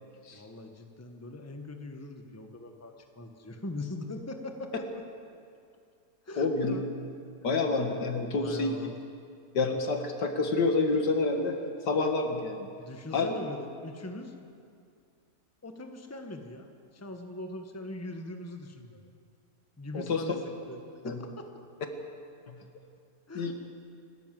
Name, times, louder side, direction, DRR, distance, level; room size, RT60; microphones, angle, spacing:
voice 1, 0.3-5.0 6.2-6.9 8.1-8.9 12.8-14.3 15.6-19.0 19.8-20.4 20.6-21.5 23.3-23.5, left 1 dB, 10° left, 5 dB, 1.2 m, -41 dB
voice 2, 6.4-6.8 7.4-8.7 9.5-11.6 11.9-12.7 13.1-13.3 19.9-20.2 21.0-21.2 23.3-23.5, left 3 dB, 80° left, 4 dB, 2.3 m, -28 dB
27.5 x 13.0 x 7.6 m, 2.4 s
omnidirectional pair, 1.8 m